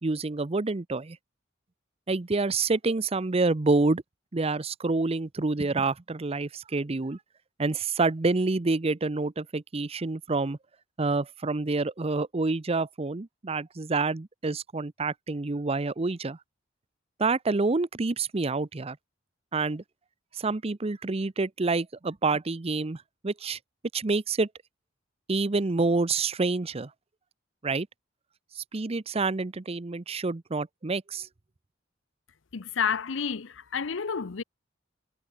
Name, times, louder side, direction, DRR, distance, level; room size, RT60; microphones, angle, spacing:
voice 1, 0.0-1.2 2.1-4.0 4.3-7.2 7.6-10.6 11.0-16.4 17.2-19.0 19.5-19.8 20.4-23.6 23.9-24.5 25.3-26.9 27.6-27.9 28.6-31.3, right 3 dB, 30° right, 0.6 m, -27 dB
voice 2, 32.5-34.4, left 6 dB, 75° left, 0.7 m, -30 dB
head